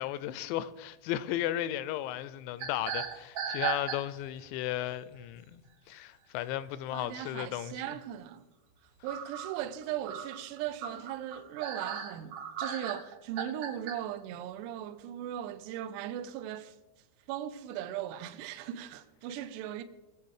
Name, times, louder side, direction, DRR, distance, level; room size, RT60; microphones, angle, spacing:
voice 1, 0.0-5.6 5.9-7.7, left 13 dB, 85° left, 2.8 m, -35 dB
sound 1, 2.6-4.4 4.9-5.1 6.6-6.7 7.1-7.2 9.1-14.0, right 7 dB, 60° right, 2.7 m, -36 dB
voice 2, 6.9-8.4 9.0-16.8 17.3-19.8, right 11 dB, 80° right, 2.7 m, -38 dB
21.0 x 7.7 x 4.8 m
omnidirectional pair, 5.3 m